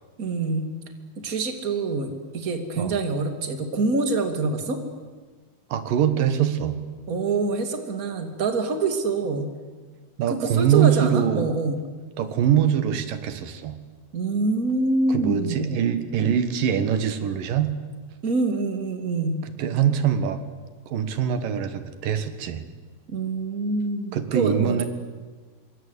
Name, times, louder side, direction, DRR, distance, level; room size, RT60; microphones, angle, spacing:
voice 1, 0.2-0.7 1.2-4.8 7.1-9.5 10.3-11.8 14.1-15.7 18.2-19.4 23.1-24.8, right 3 dB, 30° right, 6 dB, 2.6 m, -25 dB
voice 2, 5.7-6.8 10.2-11.5 12.2-13.8 15.1-17.7 19.4-20.4 20.9-22.6 24.1-24.9, right 9 dB, 85° right, 10 dB, 3.3 m, -23 dB
26.5 x 24.5 x 8.3 m, 1.4 s
omnidirectional pair, 3.8 m